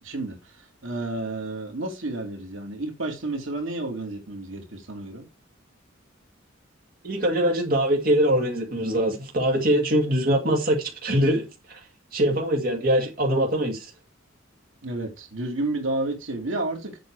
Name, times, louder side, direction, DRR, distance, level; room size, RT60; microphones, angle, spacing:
voice 1, 0.0-5.3 14.8-17.0, right 2 dB, 80° right, 2.5 m, -31 dB
voice 2, 7.0-11.8 12.1-13.9, right 1 dB, 50° right, 2.2 m, -23 dB
7.9 x 6.3 x 4.7 m
head